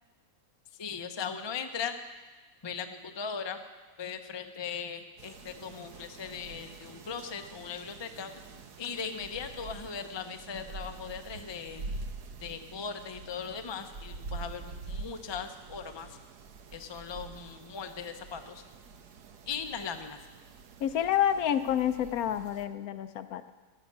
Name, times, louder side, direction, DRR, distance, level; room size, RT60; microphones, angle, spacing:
voice 1, 0.8-2.0 2.6-3.6 4.0-8.3 8.8-11.8 12.4-16.2 16.7-18.6 19.5-20.2, left 6 dB, 30° left, 6 dB, 0.4 m, -38 dB
sound 1, 5.2-22.7, right 3 dB, 85° right, 1.5 m, -46 dB
voice 2, 20.8-23.5, left 10 dB, 70° left, 11 dB, 1.0 m, -28 dB
13.5 x 6.7 x 9.5 m, 1.4 s
omnidirectional pair, 1.7 m